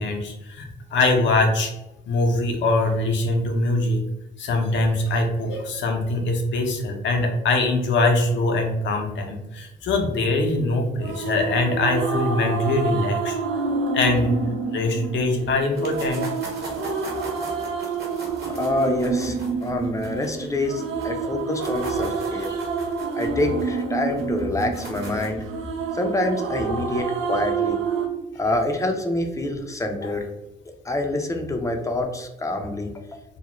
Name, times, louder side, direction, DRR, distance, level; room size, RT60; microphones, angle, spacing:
voice 1, 0.0-1.7 2.1-4.0 4.4-13.4 13.9-14.3 14.7-16.2, left 2 dB, 70° left, 3 dB, 0.6 m, -22 dB
sound 1, 11.0-28.1, right 4 dB, 85° right, 0.4 m, -28 dB
sound 2, 15.8-21.1 21.4-25.4, right 1 dB, 55° right, 1.0 m, -40 dB
voice 2, 18.5-22.6 23.2-25.4 25.9-27.8 28.4-30.3 30.8-33.1, left 1 dB, 15° left, 4 dB, 0.4 m, -26 dB
2.4 x 2.0 x 2.9 m, 0.92 s
cardioid pair, 90°, 20 cm